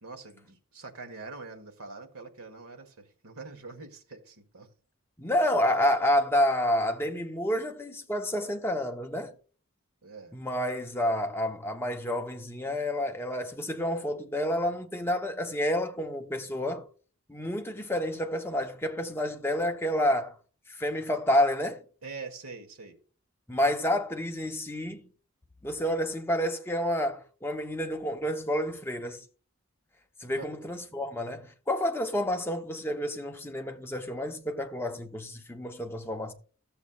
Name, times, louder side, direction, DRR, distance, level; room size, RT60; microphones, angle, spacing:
voice 1, 0.0-4.7 10.0-10.4 22.0-22.9 30.3-30.5, right 4 dB, 90° right, 1.3 m, -44 dB
voice 2, 5.2-9.3 10.3-16.8 17.3-20.3 20.7-21.8 23.5-25.1 25.6-29.2 30.2-36.3, left 1 dB, 10° left, 0.7 m, -29 dB
13.5 x 7.2 x 2.3 m
head